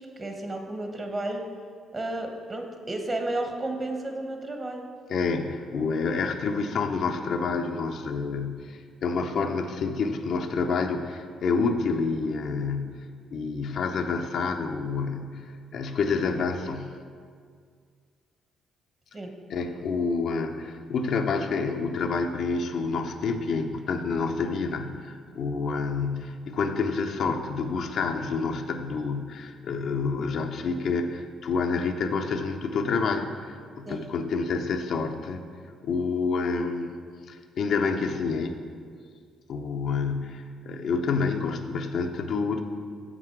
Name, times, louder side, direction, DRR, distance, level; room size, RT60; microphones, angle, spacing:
voice 1, 0.0-1.5 1.9-4.8 19.1-19.3 33.9-34.1, right 2 dB, 35° right, 4 dB, 1.1 m, -32 dB
voice 2, 5.1-13.1 13.3-15.4 15.7-17.0 19.5-35.4 35.8-36.9 37.3-38.6 39.5-42.6, left 4 dB, 65° left, 5 dB, 0.6 m, -28 dB
7.0 x 6.0 x 4.6 m, 2.1 s
supercardioid pair, 60°, 0 cm